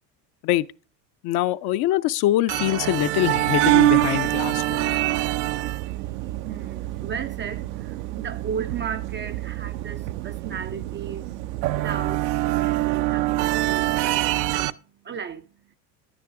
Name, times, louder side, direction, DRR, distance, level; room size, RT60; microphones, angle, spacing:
voice 1, 1.2-5.0, left 15 dB, 50° left, 0.5 m, -24 dB
sound 1, 2.5-14.7, right 18 dB, 70° right, 0.6 m, -25 dB
voice 2, 5.9-15.8, right 7 dB, 25° right, 0.4 m, -36 dB
10.5 x 9.7 x 3.6 m
hypercardioid pair, 80°, 50 cm